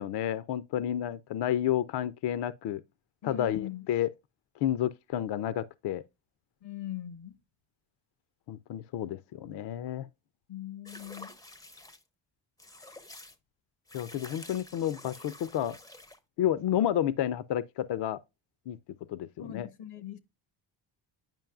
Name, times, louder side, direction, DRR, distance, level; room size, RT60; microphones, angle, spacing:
voice 1, 0.0-2.8 3.2-4.1 4.6-6.0 8.5-10.1 13.9-15.8 16.4-18.2 18.7-18.8 19.1-19.7, left 11 dB, 60° left, 0.5 m, -30 dB
voice 2, 3.2-3.9 6.6-7.4 10.5-11.3 19.4-20.2, left 11 dB, 85° left, 1.0 m, -41 dB
sound 1, 10.8-12.0 12.6-13.4 13.9-16.2, left 2 dB, 10° left, 0.4 m, -49 dB
9.1 x 5.2 x 2.3 m
cardioid pair, 95°, 48 cm